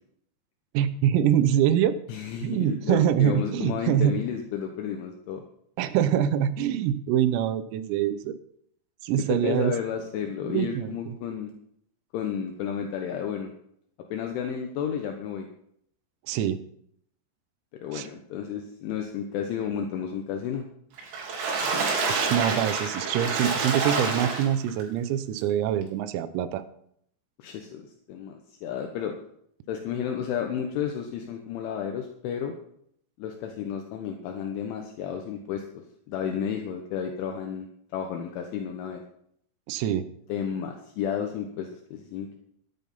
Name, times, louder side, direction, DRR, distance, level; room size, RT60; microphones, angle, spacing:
voice 1, 0.8-2.0 2.4-4.2 5.8-8.4 9.0-9.7 10.5-11.2 16.3-16.6 17.9-18.1 22.1-26.6 39.7-40.1, right 10 dB, 90° right, 12 dB, 3.6 m, -24 dB
voice 2, 2.1-5.4 9.3-11.5 12.1-13.5 14.1-15.5 17.8-20.6 27.4-29.1 29.7-32.6 33.2-37.7 37.9-39.0 40.3-42.4, left 8 dB, 75° left, 3 dB, 3.4 m, -32 dB
Water / Splash splatter, 21.0-24.8 25.4-25.5 25.8-25.9, right 4 dB, 65° right, 4.8 m, -27 dB
13.0 x 10.5 x 5.5 m, 0.69 s
omnidirectional pair, 5.9 m